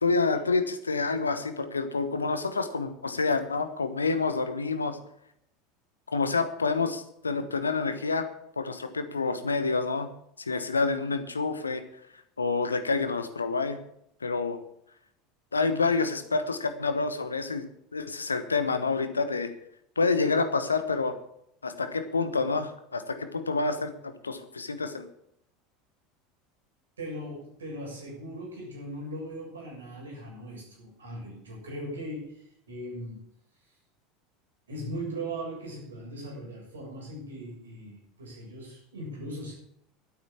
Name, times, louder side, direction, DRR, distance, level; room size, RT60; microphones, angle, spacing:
voice 1, 0.0-5.0 6.1-8.3 8.6-10.1 10.4-11.8 12.4-13.8 14.2-14.6 15.5-17.7 17.9-19.5 20.0-21.2 21.6-25.1, left 4 dB, 80° left, 10 dB, 1.2 m, -28 dB
voice 2, 27.0-33.2 34.7-39.5, right 1 dB, 75° right, -2 dB, 7.0 m, -39 dB
11.5 x 9.6 x 7.4 m, 0.74 s
figure-of-eight pair, 75°, 0 cm